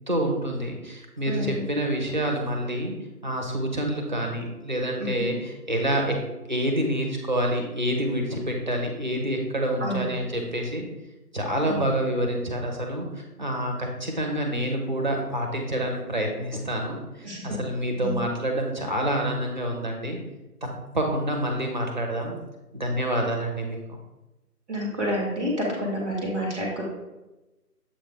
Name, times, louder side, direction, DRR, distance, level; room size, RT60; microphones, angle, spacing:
voice 1, 0.1-2.9 3.2-6.2 6.5-10.8 11.3-20.2 20.6-20.7 20.9-22.4 22.7-24.0, right 1 dB, 30° right, 2 dB, 0.8 m, -27 dB
voice 2, 1.3-1.6 5.0-5.1 9.8-10.0 11.6-11.8 17.2-17.6 18.0-18.2 24.7-26.8, equal, 5° right, -3 dB, 0.9 m, -29 dB
7.5 x 3.4 x 4.6 m, 1.0 s
figure-of-eight pair, 155°, 48 cm